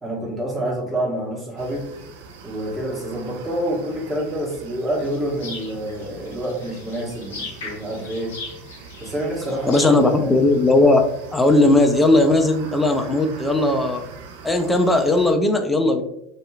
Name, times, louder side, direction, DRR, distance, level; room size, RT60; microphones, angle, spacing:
voice 1, 0.0-1.9 2.4-8.3 9.0-10.3, right 1 dB, 15° right, -4 dB, 1.1 m, -27 dB
sound 1, 1.6-15.3, right 5 dB, 65° right, 0.3 m, -42 dB
sound 2, 5.0-10.1, left 3 dB, 65° left, 0.7 m, -39 dB
voice 2, 9.7-11.0 11.3-14.0 14.4-16.0, left 2 dB, 10° left, 4 dB, 0.4 m, -17 dB
2.7 x 2.4 x 2.2 m, 0.80 s
figure-of-eight pair, 75°, 0 cm